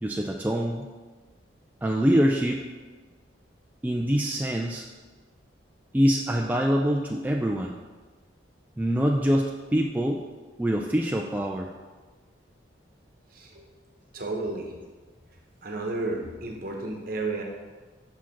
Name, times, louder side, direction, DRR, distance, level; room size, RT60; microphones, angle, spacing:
voice 1, 0.0-0.9 1.8-2.6 3.8-4.9 5.9-7.8 8.8-10.2 10.6-11.7, equal, 10° right, 0 dB, 0.3 m, -24 dB
voice 2, 13.3-13.7 14.1-14.7 15.6-17.4, right 2 dB, 50° right, 1 dB, 1.1 m, -32 dB
5.9 x 4.9 x 5.7 m, 1.3 s
head